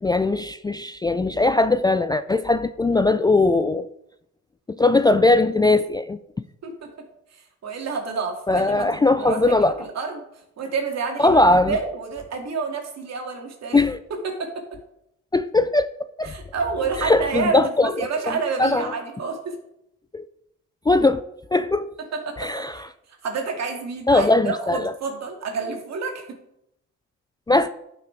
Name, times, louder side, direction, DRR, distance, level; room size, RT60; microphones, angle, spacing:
voice 1, 0.0-3.9 4.7-6.2 8.5-9.8 11.2-11.8 13.7-14.0 15.3-15.9 16.2-16.3 17.0-17.9 18.6-18.9 20.1-20.2 20.9-21.2 21.5-21.9 22.4-22.8 24.1-24.8 27.5-27.7, left 2 dB, 15° left, 0.3 m, -19 dB
voice 2, 7.3-10.2 10.6-13.8 14.2-14.8 16.2-19.6 22.1-22.9 23.2-26.4, right 4 dB, 60° right, 2.3 m, -29 dB
11.0 x 6.0 x 4.6 m
cardioid pair, 90°, 30 cm